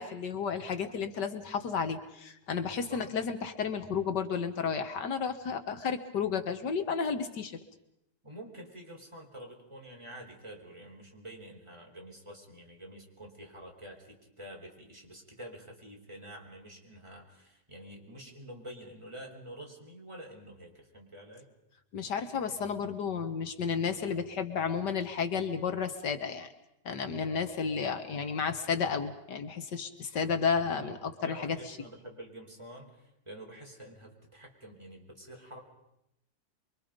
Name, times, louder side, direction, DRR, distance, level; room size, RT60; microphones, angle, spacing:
voice 1, 0.0-7.5 21.9-26.5 26.9-31.6, left 6 dB, 75° left, 8 dB, 2.0 m, -32 dB
voice 2, 8.2-21.5 27.2-27.5 30.1-30.3 30.7-35.6, right 1 dB, 15° right, -1 dB, 4.7 m, -48 dB
28.0 x 23.5 x 5.2 m, 0.84 s
omnidirectional pair, 1.8 m